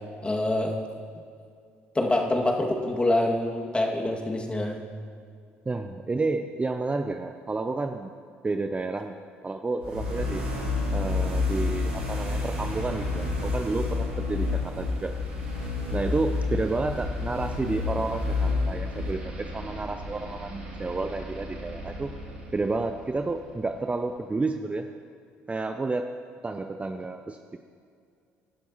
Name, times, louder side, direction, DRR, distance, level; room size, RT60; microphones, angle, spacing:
voice 1, 0.2-0.7 1.9-4.8, left 1 dB, 15° left, 0 dB, 2.1 m, -25 dB
voice 2, 5.7-8.1 8.4-9.1 9.4-10.4 10.9-15.1 15.9-22.1 22.5-24.9 25.5-26.1 26.4-27.4, right 3 dB, 20° right, 7 dB, 0.6 m, -30 dB
sound 1, 9.8-23.7, left 3 dB, 80° right, 3.0 m, -30 dB
22.5 x 12.0 x 3.0 m, 2.3 s
figure-of-eight pair, 55°, 6 cm